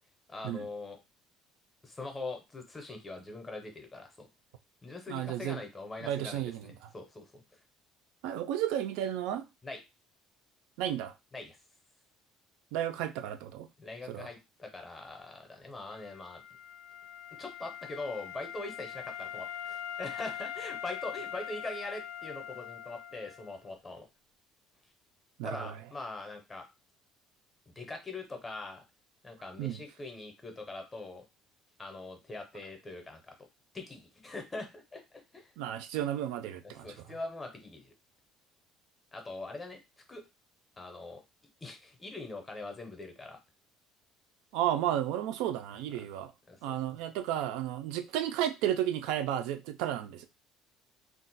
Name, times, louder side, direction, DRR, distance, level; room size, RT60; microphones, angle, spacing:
voice 1, 0.3-1.0 1.8-4.3 4.8-7.4 9.6-9.8 11.3-11.6 13.8-16.4 17.4-24.1 25.4-26.7 27.7-28.8 29.2-31.2 31.8-33.5 33.7-35.5 36.8-37.9 39.1-39.8 40.1-40.2 40.8-41.2 41.6-43.4 46.5-46.8, left 2 dB, 15° left, 0.6 m, -42 dB
voice 2, 5.1-5.6 6.0-6.9 8.2-9.4 10.8-11.1 12.7-13.7 14.1-14.3 25.4-25.8 29.6-29.8 35.6-36.9 44.5-46.3 46.6-50.3, right 11 dB, 90° right, 0.3 m, -33 dB
Wind instrument woodwind instrument, 15.9-23.6, left 10 dB, 65° left, 0.3 m, -42 dB
2.4 x 2.1 x 3.9 m
cardioid pair, 170°, 0 cm